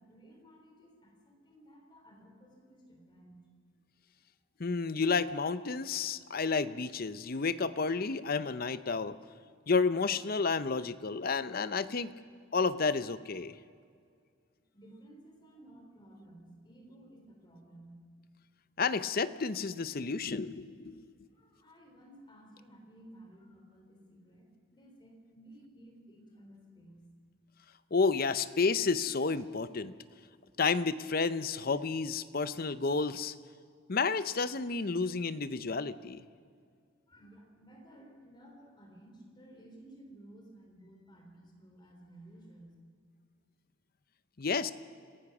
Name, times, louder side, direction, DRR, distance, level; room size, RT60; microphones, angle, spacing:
voice 1, 0.0-3.5 4.6-4.7 14.2-14.4 14.7-18.0 21.3-27.1 37.1-42.8, right 1 dB, 20° left, 1 dB, 3.7 m, -55 dB
voice 2, 4.6-9.2 9.7-12.1 12.5-13.5 18.8-21.0 27.9-29.9 30.6-33.3 33.9-36.2 44.4-44.7, left 4 dB, 45° left, 14 dB, 0.7 m, -31 dB
26.0 x 17.0 x 6.1 m, 2.1 s
head